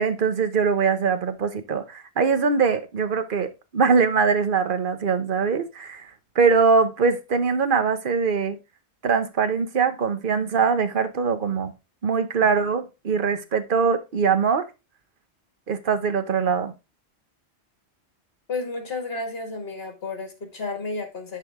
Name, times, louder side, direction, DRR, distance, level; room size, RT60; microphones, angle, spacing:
voice 1, 0.0-6.1 6.3-8.6 9.0-11.7 12.0-14.7 15.7-16.7, right 5 dB, 50° right, 1.1 m, -22 dB
voice 2, 18.5-21.4, left 3 dB, 60° left, 2.2 m, -32 dB
10.5 x 4.9 x 3.6 m
omnidirectional pair, 1.1 m